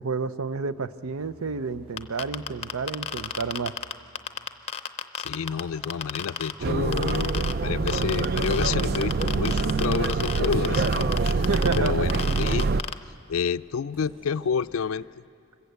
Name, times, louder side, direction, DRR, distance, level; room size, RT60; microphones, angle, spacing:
voice 1, 0.0-3.8 11.5-12.1, right 4 dB, 90° right, 14 dB, 0.6 m, -30 dB
sound 1, 0.6-4.3 5.4-8.5 9.4-15.1, equal, 25° right, 5.5 m, -53 dB
sound 2, 2.0-6.5 6.9-7.5 7.9-12.9, left 7 dB, 30° left, 0.6 m, -31 dB
voice 2, 5.2-11.5 11.8-12.7 13.3-15.1, left 6 dB, 80° left, 16 dB, 0.4 m, -29 dB
sound 3, 6.6-12.8, right 3 dB, 45° right, 0.4 m, -25 dB
26.0 x 15.0 x 8.1 m, 2.8 s
head